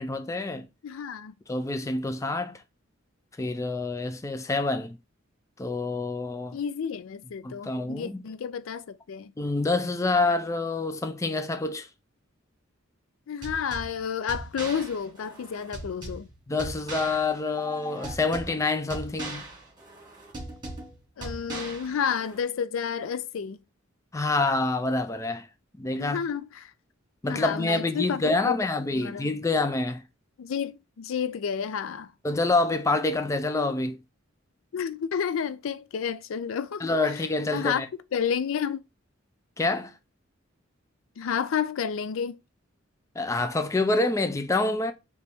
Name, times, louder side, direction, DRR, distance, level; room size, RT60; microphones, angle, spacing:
voice 1, 0.0-0.7 1.5-2.6 3.4-5.0 5.6-6.6 7.4-8.3 9.4-11.9 16.5-19.5 24.1-25.5 25.8-26.2 27.2-30.0 32.2-34.0 36.8-37.9 39.6-39.9 43.2-44.9, left 3 dB, 15° left, 0.4 m, -27 dB
voice 2, 0.8-1.3 6.5-9.3 13.3-16.3 21.2-23.6 26.0-26.7 27.3-28.6 28.9-29.3 30.4-32.1 34.7-37.2 37.5-37.8 38.1-38.8 41.2-42.4, left 7 dB, 85° left, 0.4 m, -30 dB
sound 1, 13.4-22.4, right 2 dB, 20° right, 1.6 m, -40 dB
3.4 x 3.0 x 4.2 m
head